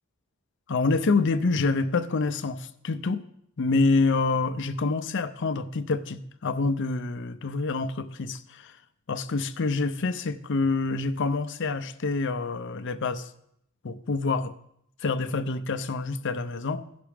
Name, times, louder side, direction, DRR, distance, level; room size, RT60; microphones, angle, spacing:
voice 1, 0.7-3.2 3.6-8.7 9.1-13.3 13.8-14.5 15.0-16.9, left 3 dB, 60° left, 10 dB, 0.6 m, -27 dB
16.0 x 6.0 x 3.4 m, 0.74 s
head